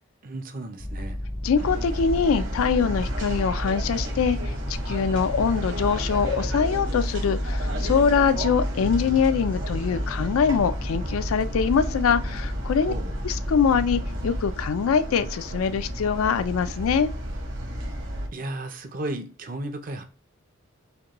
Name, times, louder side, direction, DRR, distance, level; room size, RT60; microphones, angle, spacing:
voice 1, 0.2-1.2 12.9-13.1 18.3-20.0, right 1 dB, 40° right, 0.5 m, -34 dB
sound 1, 0.8-14.5, equal, 20° left, 0.5 m, -32 dB
voice 2, 1.4-12.9 13.2-17.1, left 6 dB, 85° left, 0.4 m, -23 dB
sound 2, 1.5-18.3, right 1 dB, 65° right, 1.2 m, -33 dB
5.0 x 2.2 x 2.9 m
head